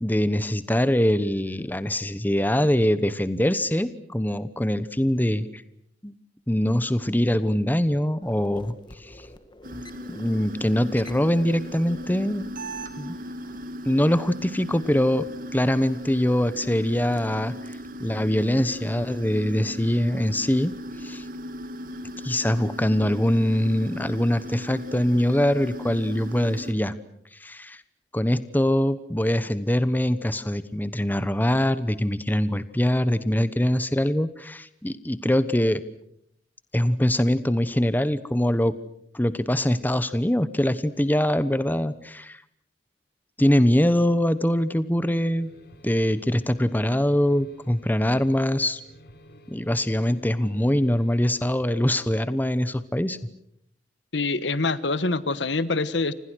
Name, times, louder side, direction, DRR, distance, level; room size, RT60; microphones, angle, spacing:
voice 1, 0.0-5.6 6.0-6.1 6.5-9.1 10.1-12.5 13.0-13.2 13.9-20.7 21.0-21.2 22.2-26.9 27.3-27.8 28.1-35.8 36.7-38.8 39.1-42.4 43.4-45.5 45.8-48.8 49.5-53.2, equal, 10° left, 14 dB, 1.0 m, -23 dB
sound 1, 8.2-13.6, left 1 dB, 25° left, 1.8 m, -48 dB
sound 2, 9.6-26.7, equal, 50° right, 2.4 m, -37 dB
sound 3, 45.4-52.1, equal, 55° left, 4.1 m, -51 dB
voice 2, 54.1-56.1, left 3 dB, 75° left, 15 dB, 1.4 m, -25 dB
30.0 x 27.0 x 6.4 m, 0.71 s
head